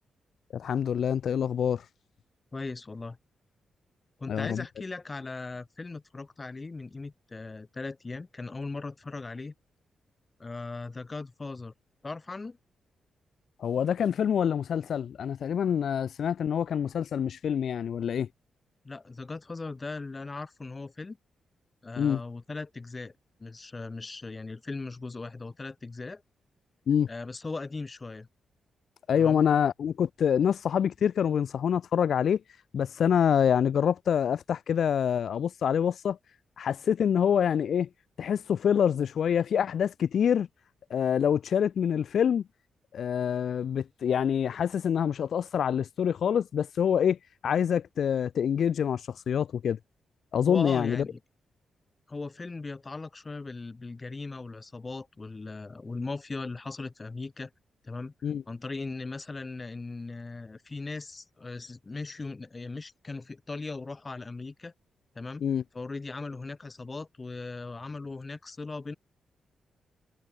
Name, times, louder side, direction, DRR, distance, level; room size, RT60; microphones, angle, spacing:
voice 1, 0.5-1.8 4.3-4.6 13.6-18.3 22.0-22.2 26.9-27.1 29.1-32.4 32.7-36.2 36.6-37.9 38.2-40.5 40.9-42.4 42.9-47.2 47.4-49.8 50.3-51.0 58.2-58.4 65.4-65.6, left 8 dB, 65° left, 0.7 m, -26 dB
voice 2, 2.5-3.2 4.2-9.5 10.4-11.7 12.0-12.6 18.8-21.2 21.8-23.1 23.4-26.2 27.1-28.3 29.2-29.4 50.5-51.2 52.1-57.5 57.8-58.1 58.5-64.7 65.1-65.4 65.7-69.0, left 3 dB, 35° left, 1.2 m, -38 dB
hypercardioid pair, 40°, 0 cm